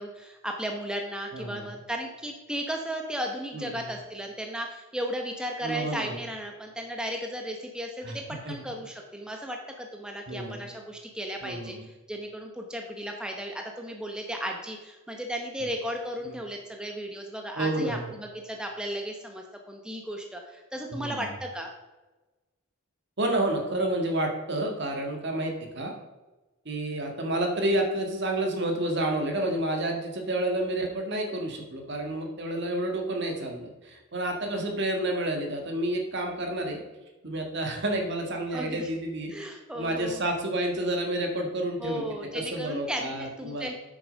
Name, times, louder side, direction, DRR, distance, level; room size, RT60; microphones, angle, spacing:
voice 1, 0.0-21.7 38.5-38.9 39.3-40.2 41.8-43.7, equal, 5° right, 2 dB, 0.9 m, -35 dB
voice 2, 1.3-1.7 3.5-3.8 5.6-6.2 8.0-8.2 8.4-8.5 10.3-10.7 11.4-11.8 16.2-16.3 17.5-18.1 20.9-21.3 23.2-26.0 26.6-36.8 37.2-42.1 42.3-43.7, right 1 dB, 55° right, 3 dB, 1.7 m, -30 dB
8.5 x 6.4 x 5.2 m, 1.1 s
head